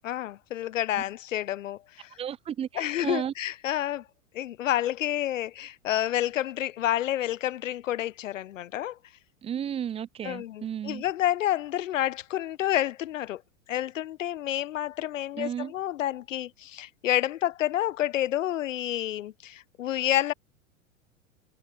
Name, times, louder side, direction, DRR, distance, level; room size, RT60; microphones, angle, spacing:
voice 1, 0.0-2.1 2.7-4.1 4.3-9.0 10.2-13.4 13.7-20.3, left 13 dB, 65° left, 1.0 m, -29 dB
voice 2, 2.2-3.3 9.4-11.0 15.3-15.7, right 9 dB, 15° right, 0.6 m, -33 dB
figure-of-eight pair, 90°, 41 cm